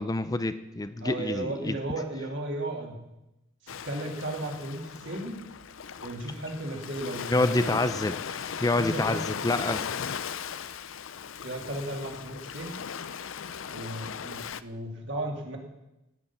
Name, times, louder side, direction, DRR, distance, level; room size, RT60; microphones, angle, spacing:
voice 1, 0.0-1.8 7.3-9.8, left 2 dB, 15° left, 11 dB, 0.5 m, -27 dB
voice 2, 1.0-3.0 3.6-5.4 6.0-7.8 8.8-9.2 11.4-12.8 13.7-15.6, right 1 dB, 60° right, 0 dB, 3.1 m, -35 dB
Ocean, 3.7-14.6, left 7 dB, 70° left, 0.6 m, -38 dB
15.5 x 6.7 x 9.8 m, 0.95 s
head